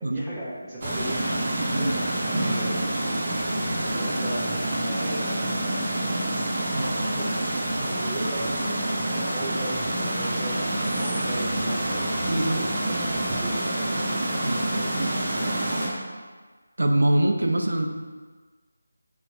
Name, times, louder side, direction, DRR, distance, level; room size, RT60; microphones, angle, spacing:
voice 1, 0.0-2.8 3.8-5.7 6.8-12.1 12.5-14.0, right 1 dB, 10° right, -10 dB, 0.4 m, -37 dB
sound 1, 0.8-15.9, right 1 dB, 30° right, 0.9 m, -27 dB
voice 2, 12.3-12.6 14.4-14.6 14.9-15.2 16.8-17.9, right 1 dB, 70° right, 3 dB, 0.5 m, -24 dB
5.9 x 2.3 x 2.6 m, 1.4 s
figure-of-eight pair, 160°, 0 cm